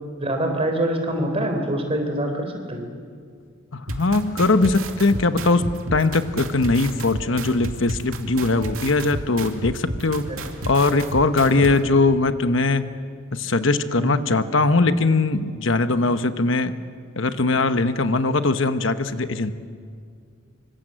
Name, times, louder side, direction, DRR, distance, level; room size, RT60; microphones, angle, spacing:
voice 1, 0.2-2.9 10.3-10.4 11.4-11.5 14.0-14.2, right 1 dB, 30° right, 4 dB, 3.8 m, -25 dB
voice 2, 3.7-10.3 10.6-12.9 13.3-16.7 17.2-19.5, left 3 dB, 65° left, 10 dB, 1.1 m, -20 dB
sound 1, 3.9-11.7, right 1 dB, 80° right, 2.6 m, -31 dB
26.5 x 25.0 x 7.7 m, 2.1 s
head